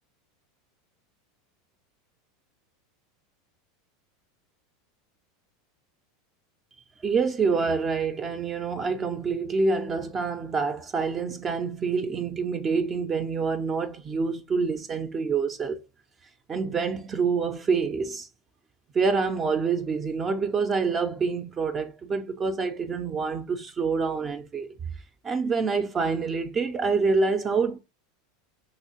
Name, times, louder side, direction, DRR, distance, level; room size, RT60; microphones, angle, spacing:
voice 1, 7.0-15.8 16.5-18.3 18.9-24.7 25.2-27.8, right 4 dB, 30° right, 0.4 m, -26 dB
2.9 x 2.9 x 2.7 m
hypercardioid pair, 90°, 0 cm